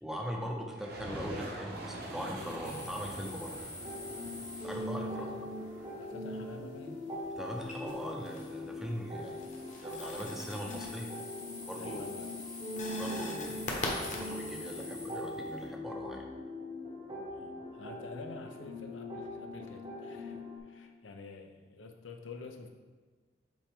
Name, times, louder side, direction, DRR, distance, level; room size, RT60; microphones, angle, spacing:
voice 1, 0.0-3.7 4.6-5.3 7.4-9.4 9.8-11.1 11.7-12.0 12.9-16.3, equal, ahead, 0 dB, 0.7 m, -40 dB
sound 1, 0.7-6.3, right 1 dB, 55° right, 1.0 m, -44 dB
sound 2, 2.6-5.1 7.5-8.6 9.0-15.7, left 2 dB, 40° left, 1.0 m, -43 dB
sound 3, 3.8-20.6, left 1 dB, 30° right, 0.9 m, -41 dB
voice 2, 4.8-5.4 5.7-7.1 9.2-9.5 11.8-12.4 17.3-22.7, left 3 dB, 85° left, 5 dB, 0.7 m, -48 dB
7.2 x 4.4 x 3.6 m, 1.4 s
head